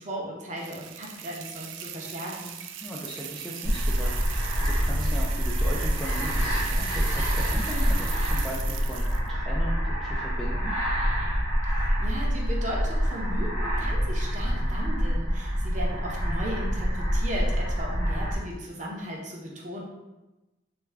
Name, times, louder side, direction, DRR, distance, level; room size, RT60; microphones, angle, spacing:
voice 1, 0.0-2.6 11.6-19.8, equal, 40° right, -2 dB, 0.7 m, -36 dB
sound 1, 0.6-9.3, right 10 dB, 85° right, 0.3 m, -39 dB
voice 2, 2.8-10.7, equal, ahead, -5 dB, 0.3 m, -38 dB
sound 2, 3.6-18.4, equal, 20° left, 0.9 m, -26 dB
3.3 x 2.2 x 3.4 m, 1.0 s
head